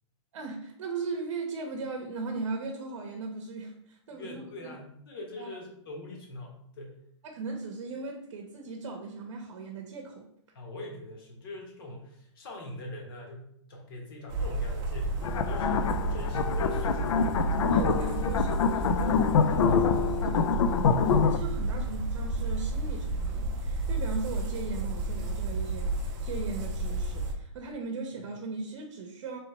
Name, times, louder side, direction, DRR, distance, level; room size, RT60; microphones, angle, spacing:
voice 1, 0.3-4.7 5.4-5.5 7.2-10.3 17.7-25.9 26.2-29.4, right 4 dB, 65° right, 2 dB, 0.8 m, -38 dB
voice 2, 4.1-7.0 10.5-15.2 15.4-17.3 21.8-21.9, left 1 dB, 45° left, 0 dB, 1.1 m, -43 dB
sound 1, 14.3-27.3, right 2 dB, 25° right, 0.6 m, -31 dB
sound 2, 15.2-21.4, left 6 dB, 80° left, 0.4 m, -26 dB
3.2 x 2.9 x 4.2 m, 0.72 s
hypercardioid pair, 170°, 16 cm